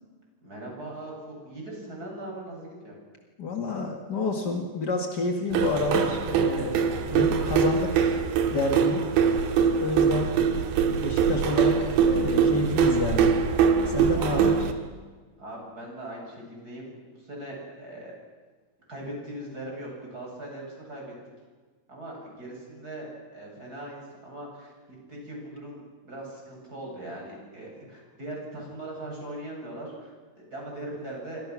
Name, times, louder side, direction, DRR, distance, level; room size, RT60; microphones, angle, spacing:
voice 1, 0.4-3.0 14.1-14.7 15.4-18.1 18.9-21.1 21.9-31.4, right 1 dB, 20° right, -1 dB, 8.4 m, -40 dB
voice 2, 3.4-9.4 9.8-10.4 10.8-13.3 13.9-14.6, left 3 dB, 65° left, 2 dB, 1.0 m, -29 dB
sound 1, 5.5-14.7, right 6 dB, 85° right, 3.9 m, -23 dB
27.0 x 26.5 x 6.3 m, 1.4 s
omnidirectional pair, 5.1 m